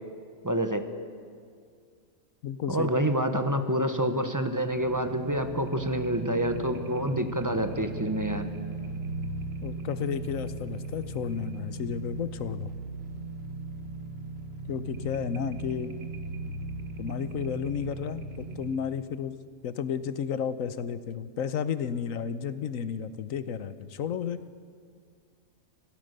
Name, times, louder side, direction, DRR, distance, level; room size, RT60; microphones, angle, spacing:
voice 1, 0.4-0.8 2.7-8.5, right 1 dB, 15° right, 7 dB, 1.1 m, -27 dB
voice 2, 2.4-2.9 9.6-12.7 14.7-16.0 17.0-19.4 19.6-24.4, left 7 dB, 85° left, 13 dB, 1.3 m, -32 dB
sound 1, 4.7-18.8, right 3 dB, 50° right, 1.8 m, -38 dB
25.5 x 17.5 x 6.7 m, 2.1 s
omnidirectional pair, 1.4 m